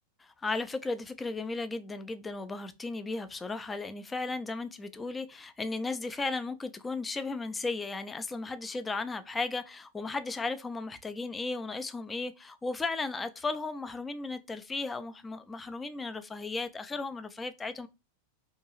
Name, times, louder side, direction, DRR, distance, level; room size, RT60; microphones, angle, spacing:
voice 1, 0.3-17.9, left 3 dB, 15° left, 0.3 m, -35 dB
2.6 x 2.3 x 2.9 m
figure-of-eight pair, 90°, 0 cm